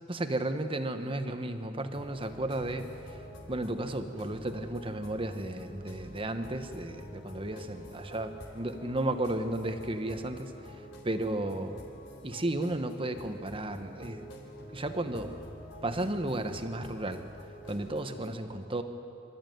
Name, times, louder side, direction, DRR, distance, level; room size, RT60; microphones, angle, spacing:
voice 1, 0.1-3.2 3.5-11.8 12.2-14.2 14.7-15.3 15.8-17.2 17.7-18.8, right 1 dB, 30° right, 8 dB, 1.2 m, -34 dB
sound 1, 1.9-18.3, equal, 80° left, 4.0 m, -48 dB
25.5 x 13.5 x 9.3 m, 2.8 s
head